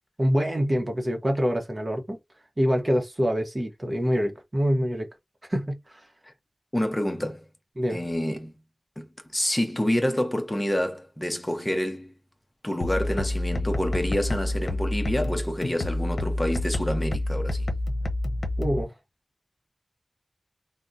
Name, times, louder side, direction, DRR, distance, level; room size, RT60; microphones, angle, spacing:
voice 1, 0.2-2.2 2.6-5.1 5.5-5.8 7.8-8.0 18.6-18.9, equal, 35° right, 0.8 m, -25 dB
voice 2, 6.7-7.5 7.9-8.5 9.0-9.1 9.3-12.1 12.6-17.7, equal, 15° left, 0.7 m, -28 dB
sound 1, 12.8-18.8, left 1 dB, 85° left, 0.6 m, -28 dB
3.5 x 2.2 x 2.6 m
wide cardioid pair, 80°, 0 cm